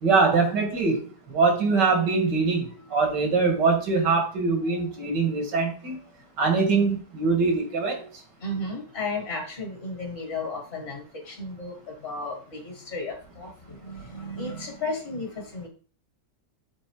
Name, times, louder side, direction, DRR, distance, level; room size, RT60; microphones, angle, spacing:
voice 1, 0.0-6.0 6.4-8.0, right 4 dB, 85° right, 4 dB, 2.4 m, -23 dB
voice 2, 4.6-5.0 5.8-5.9 7.9-8.1 8.4-15.7, left 2 dB, 40° left, 0 dB, 2.0 m, -34 dB
7.5 x 4.2 x 4.7 m, 0.41 s
omnidirectional pair, 1.8 m